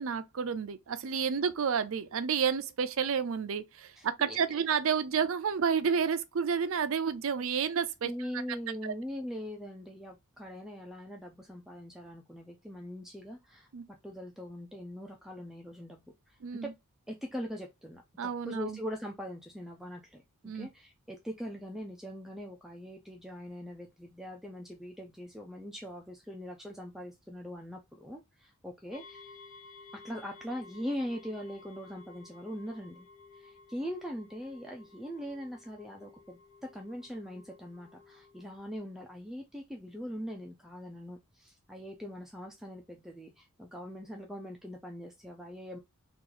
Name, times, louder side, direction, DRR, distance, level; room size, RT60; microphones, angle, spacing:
voice 1, 0.0-8.1 8.8-8.9 13.7-13.8 16.4-16.7 18.2-18.8 20.4-20.7, right 6 dB, 65° right, 0.5 m, -30 dB
voice 2, 4.0-4.6 8.0-13.7 14.0-16.7 17.1-18.0 18.5-29.4 29.9-33.1 33.3-45.8, equal, ahead, 0.4 m, -41 dB
sound 1, 28.9-38.8, left 4 dB, 85° left, 1.0 m, -55 dB
3.0 x 2.5 x 3.8 m
head